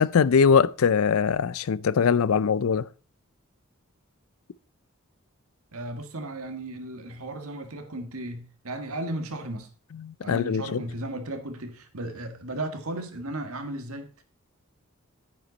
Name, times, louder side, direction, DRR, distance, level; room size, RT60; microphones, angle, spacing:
voice 1, 0.0-2.9 9.9-10.8, left 6 dB, 75° left, 0.4 m, -22 dB
voice 2, 5.7-9.7 10.2-14.2, right 1 dB, 80° right, 1.7 m, -35 dB
9.8 x 9.4 x 4.0 m
head